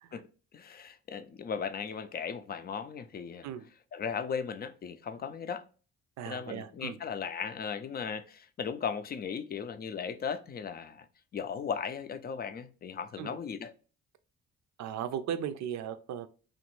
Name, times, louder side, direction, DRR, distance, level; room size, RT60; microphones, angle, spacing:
voice 1, 0.1-3.5 3.9-5.6 6.2-11.1 11.3-13.7, left 6 dB, 35° left, 0.4 m, -37 dB
voice 2, 6.2-7.0 13.2-13.4 14.8-16.3, right 9 dB, 65° right, 0.5 m, -37 dB
3.1 x 2.4 x 3.0 m
cardioid pair, 90°, 30 cm